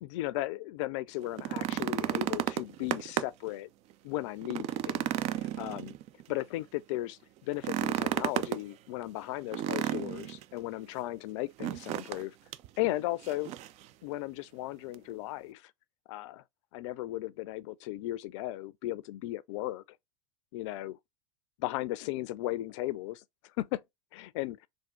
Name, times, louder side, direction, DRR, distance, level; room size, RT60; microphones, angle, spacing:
voice 1, 0.0-3.7 4.0-5.1 5.6-5.9 6.3-12.4 12.8-13.5 14.0-15.7 16.1-16.4 16.7-19.8 20.5-21.0 21.6-23.2 23.6-23.8 24.1-24.6, left 16 dB, 55° left, 0.5 m, -36 dB
sound 1, 1.2-3.5 3.9-4.0 4.4-6.3 7.5-8.6 9.5-10.4 11.6-12.2 12.5-12.7 13.2-13.8 14.9-15.0, right 12 dB, 40° right, 0.4 m, -32 dB
3.6 x 2.5 x 4.3 m
hypercardioid pair, 85°, 18 cm